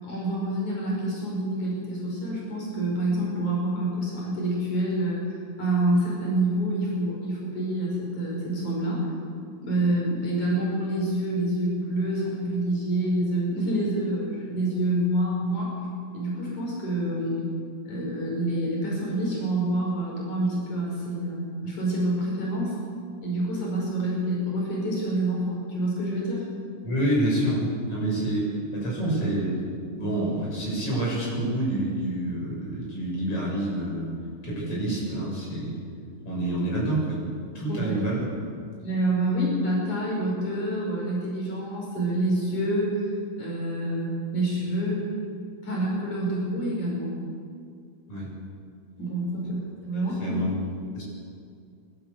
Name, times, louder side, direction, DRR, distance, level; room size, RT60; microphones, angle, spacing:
voice 1, 0.0-9.1 9.6-15.8 16.1-17.4 17.9-22.7 23.2-26.5 37.7-38.0 38.8-43.1 43.4-45.0 45.6-47.1 49.0-50.4, right 1 dB, 85° left, -4 dB, 7.0 m, -27 dB
voice 2, 26.8-29.6 30.0-34.1 34.4-35.8 36.2-37.2 37.5-38.2 48.1-48.3 49.9-50.5 50.9-51.0, right 1 dB, 50° left, -4 dB, 8.5 m, -27 dB
26.0 x 13.0 x 8.4 m, 2.3 s
omnidirectional pair, 3.3 m